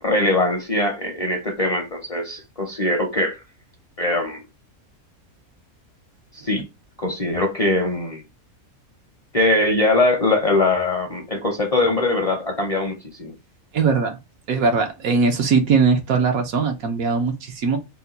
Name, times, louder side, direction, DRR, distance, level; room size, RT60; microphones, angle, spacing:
voice 1, 0.0-3.4 4.0-4.4 6.3-6.7 7.0-8.2 9.3-13.3, left 2 dB, 35° left, 0.6 m, -21 dB
voice 2, 13.7-14.2 14.5-17.8, right 5 dB, 80° right, 1.3 m, -20 dB
4.0 x 2.2 x 4.0 m
omnidirectional pair, 1.5 m